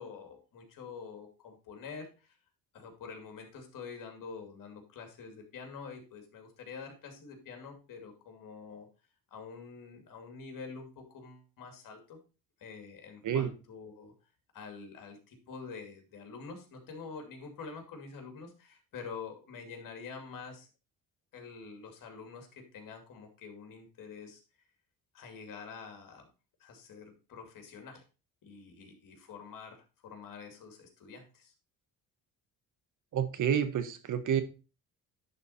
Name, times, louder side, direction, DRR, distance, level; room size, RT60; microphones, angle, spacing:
voice 1, 0.0-2.4 2.7-8.9 9.3-12.2 12.6-14.1 14.5-20.7 21.3-24.4 25.1-26.3 26.6-28.0 28.4-31.5, left 5 dB, 65° left, 4 dB, 2.5 m, -46 dB
voice 2, 33.1-34.4, right 8 dB, 60° right, 10 dB, 1.2 m, -29 dB
11.0 x 4.0 x 4.2 m, 0.32 s
cardioid pair, 105°, 35 cm